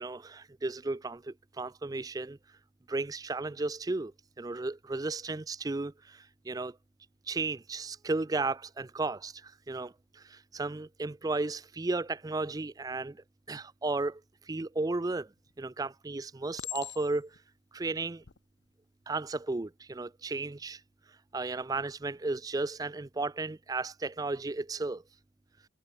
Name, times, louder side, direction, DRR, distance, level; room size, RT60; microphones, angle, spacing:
voice 1, 0.0-2.4 2.9-4.1 4.4-6.8 7.3-14.2 14.5-15.3 15.6-17.3 17.7-18.2 19.1-20.8 21.3-25.0, right 3 dB, 20° right, 0.4 m, -34 dB
Chink clink, 15.1-15.6 16.6-17.4 18.1-18.4, left 13 dB, 70° left, 0.8 m, -42 dB
head